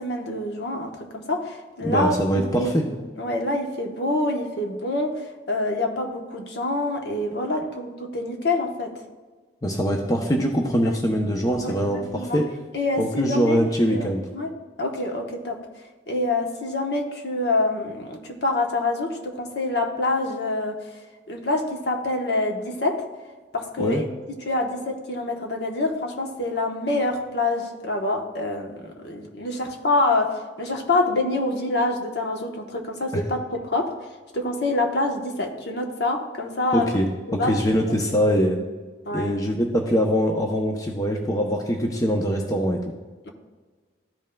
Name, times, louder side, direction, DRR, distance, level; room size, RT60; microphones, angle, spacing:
voice 1, 0.0-8.9 10.8-11.0 11.6-12.4 12.7-14.1 14.3-14.5 14.8-15.6 16.1-20.8 21.3-23.0 23.5-33.9 34.3-36.9 37.3-37.6 37.9-38.0 38.3-38.4 39.0-39.3, left 2 dB, 60° left, 2 dB, 1.0 m, -26 dB
voice 2, 1.8-2.9 9.6-12.5 13.0-14.2 23.8-24.0 33.1-33.2 36.7-38.6 39.1-42.8, equal, 20° left, 2 dB, 0.6 m, -23 dB
13.5 x 5.4 x 2.2 m, 1.4 s
head